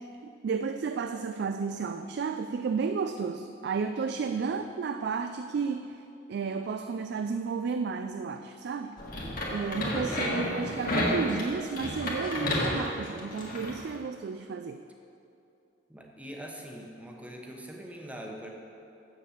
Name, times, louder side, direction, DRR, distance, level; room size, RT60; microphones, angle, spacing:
voice 1, 0.0-6.0 6.3-9.0 9.5-14.8, right 5 dB, 65° right, 8 dB, 0.3 m, -32 dB
sound 1, 9.0-13.8, left 1 dB, 50° left, 1.8 m, -31 dB
voice 2, 15.9-18.5, equal, 10° right, 0 dB, 1.0 m, -43 dB
7.6 x 7.1 x 7.1 m, 2.7 s
head